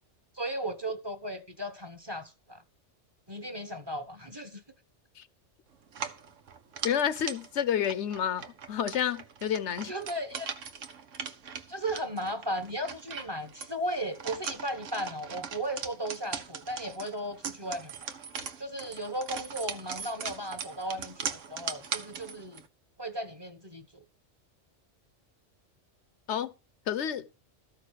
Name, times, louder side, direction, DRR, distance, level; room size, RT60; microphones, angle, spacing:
voice 1, 0.3-2.6 3.3-4.6 9.7-10.5 11.7-17.9 18.6-22.6 23.0-24.0, right 1 dB, 20° right, 1.1 m, -36 dB
sound 1, 5.9-22.7, right 6 dB, 90° right, 1.3 m, -40 dB
voice 2, 6.8-9.9 26.3-26.5 26.9-27.3, left 9 dB, 70° left, 1.0 m, -29 dB
13.5 x 5.7 x 6.6 m
omnidirectional pair, 1.3 m